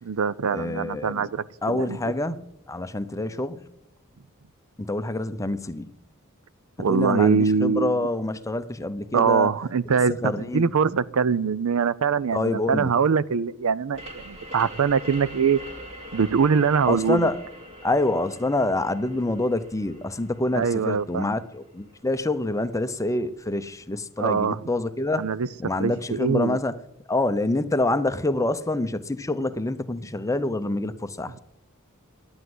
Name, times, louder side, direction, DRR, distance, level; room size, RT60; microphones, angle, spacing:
voice 1, 0.0-2.0 6.8-8.1 9.1-15.6 16.1-17.3 20.5-21.4 24.2-24.6 25.2-25.5 25.8-26.6, right 6 dB, 70° right, 0.5 m, -23 dB
voice 2, 0.5-1.3 1.6-2.4 2.7-3.7 4.8-5.9 6.9-9.5 9.9-10.7 12.3-12.9 16.9-17.4 17.8-25.3 25.6-26.8 27.1-31.3, left 2 dB, 15° left, 0.6 m, -26 dB
sound 1, 13.9-23.3, equal, 30° right, 1.9 m, -43 dB
11.5 x 9.6 x 7.9 m
head